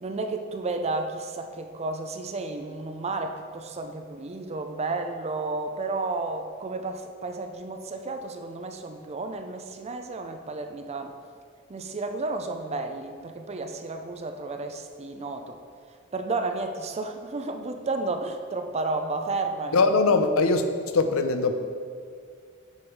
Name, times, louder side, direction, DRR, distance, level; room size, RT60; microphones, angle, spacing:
voice 1, 0.0-11.1 11.7-15.6 16.1-19.8, right 3 dB, 30° right, 6 dB, 0.5 m, -32 dB
voice 2, 19.7-20.7 20.9-21.6, left 3 dB, 75° left, 8 dB, 0.6 m, -21 dB
7.8 x 5.5 x 4.7 m, 2.1 s
head